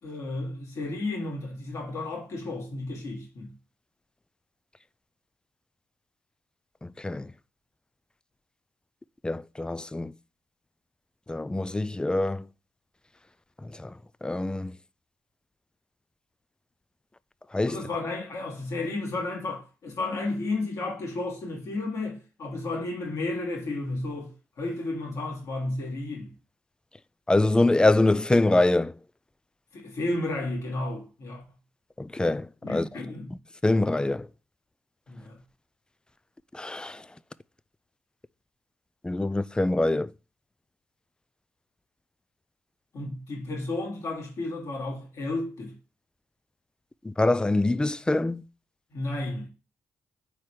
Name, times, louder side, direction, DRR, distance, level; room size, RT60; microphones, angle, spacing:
voice 1, 0.0-3.5 17.6-26.3 29.7-31.4 32.6-33.3 35.1-35.4 42.9-45.7 48.9-49.5, left 2 dB, 65° left, 2.6 m, -32 dB
voice 2, 6.8-7.3 9.2-10.1 11.3-12.5 13.6-13.9 14.2-14.8 17.5-17.8 27.3-28.9 32.0-32.8 33.6-34.3 36.5-37.1 39.0-40.1 47.0-48.4, left 2 dB, 15° left, 0.4 m, -24 dB
4.6 x 4.2 x 4.9 m
hypercardioid pair, 45°, 6 cm